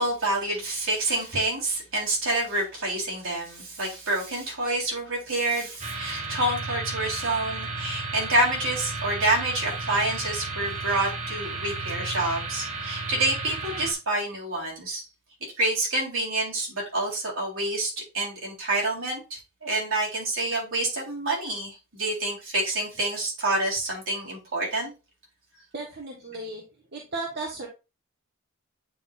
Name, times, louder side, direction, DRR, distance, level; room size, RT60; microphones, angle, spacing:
voice 1, 0.0-15.0 15.6-24.9, right 2 dB, 70° right, -4 dB, 3.8 m, -28 dB
sound 1, 5.8-13.9, right 3 dB, 35° right, 1.5 m, -33 dB
voice 2, 25.7-26.6 27.1-27.7, right 2 dB, 50° right, 0 dB, 1.2 m, -34 dB
8.9 x 4.2 x 2.5 m, 0.28 s
head